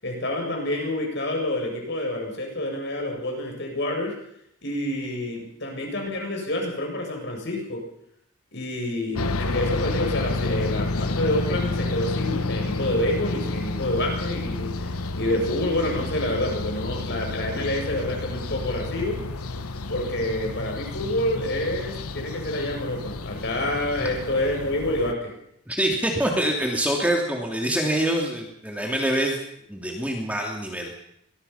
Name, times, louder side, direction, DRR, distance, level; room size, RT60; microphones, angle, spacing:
voice 1, 0.0-4.1 4.6-7.8 8.5-19.2 19.9-25.3, left 1 dB, 50° left, 1 dB, 7.7 m, -28 dB
sound 1, 9.2-25.1, left 2 dB, 85° left, 1.2 m, -30 dB
voice 2, 25.7-29.4 29.7-30.9, right 1 dB, 5° right, 0 dB, 2.9 m, -25 dB
24.0 x 21.0 x 5.9 m, 0.74 s
head